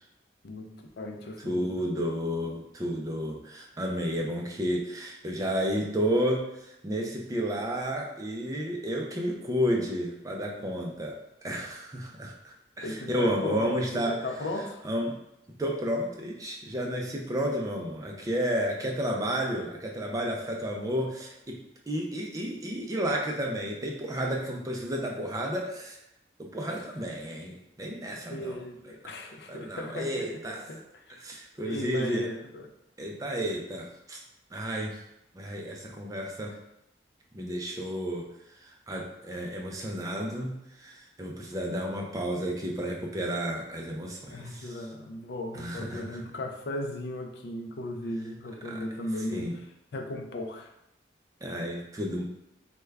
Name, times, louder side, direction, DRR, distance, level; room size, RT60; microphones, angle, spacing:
voice 1, 0.4-1.8 12.8-14.8 26.6-26.8 28.3-30.4 30.7-31.1 31.6-32.7 44.3-49.7 49.9-50.7, left 1 dB, 60° left, 3 dB, 0.4 m, -36 dB
voice 2, 1.5-11.2 11.4-14.2 14.8-15.2 15.6-21.6 21.9-26.0 26.4-28.6 29.5-30.6 31.2-32.3 33.0-34.2 34.5-35.0 35.3-36.5 37.3-38.3 38.6-44.7 45.5-46.2 48.6-48.8 49.3-49.6 51.4-52.2, equal, 20° right, 0 dB, 0.4 m, -31 dB
3.3 x 2.2 x 3.3 m, 0.83 s
head